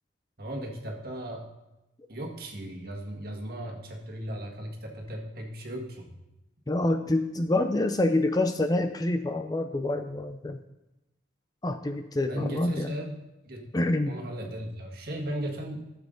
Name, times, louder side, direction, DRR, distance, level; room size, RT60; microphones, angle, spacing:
voice 1, 0.4-1.5 2.1-6.1 12.3-13.2 13.4-13.7 14.1-15.9, equal, 50° right, 1 dB, 1.7 m, -36 dB
voice 2, 6.7-10.6 11.6-12.9 13.7-14.1, left 2 dB, 20° left, 8 dB, 0.4 m, -27 dB
12.5 x 7.2 x 3.9 m, 0.96 s
head